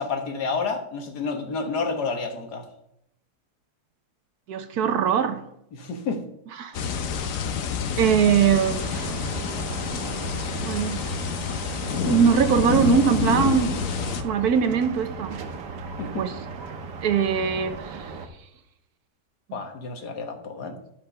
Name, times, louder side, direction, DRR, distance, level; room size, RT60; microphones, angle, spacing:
voice 1, 0.0-2.7 5.7-6.2 16.0-16.3 19.5-20.8, left 4 dB, 75° left, 1.8 m, -30 dB
voice 2, 4.5-5.4 6.6-6.7 8.0-9.1 10.6-11.0 12.0-13.8 14.2-15.4 16.2-16.3 17.0-18.1, right 7 dB, 70° right, 1.3 m, -21 dB
sound 1, 6.7-14.2, left 6 dB, 60° left, 1.1 m, -28 dB
sound 2, 8.6-18.3, right 4 dB, 85° right, 1.6 m, -36 dB
11.0 x 5.5 x 5.6 m
omnidirectional pair, 1.8 m